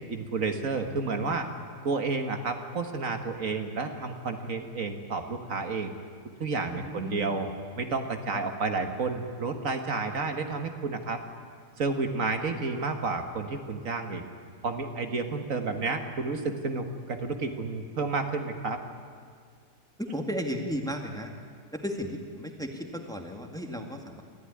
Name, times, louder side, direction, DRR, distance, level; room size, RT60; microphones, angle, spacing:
voice 1, 0.0-1.5 1.8-5.9 6.4-11.2 11.8-14.2 14.6-18.8, right 4 dB, 65° right, 6 dB, 1.8 m, -31 dB
voice 2, 6.8-7.4 8.3-8.4 20.1-21.3 21.7-24.2, equal, 5° left, 3 dB, 1.9 m, -34 dB
24.0 x 15.0 x 9.8 m, 2.1 s
omnidirectional pair, 1.5 m